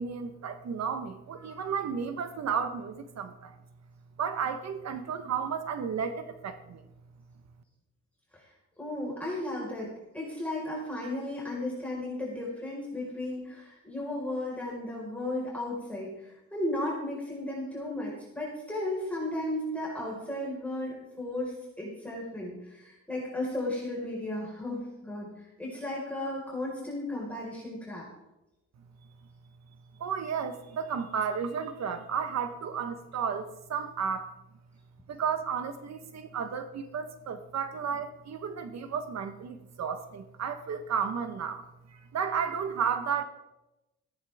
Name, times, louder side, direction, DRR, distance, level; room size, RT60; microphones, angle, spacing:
voice 1, 0.0-3.6 4.2-6.8 30.0-34.3 35.1-43.2, right 7 dB, 60° right, 9 dB, 1.2 m, -33 dB
voice 2, 8.8-25.3 25.6-28.0, left 1 dB, 5° left, -4 dB, 4.7 m, -35 dB
15.5 x 13.5 x 3.6 m, 0.95 s
cardioid pair, 90°, 30 cm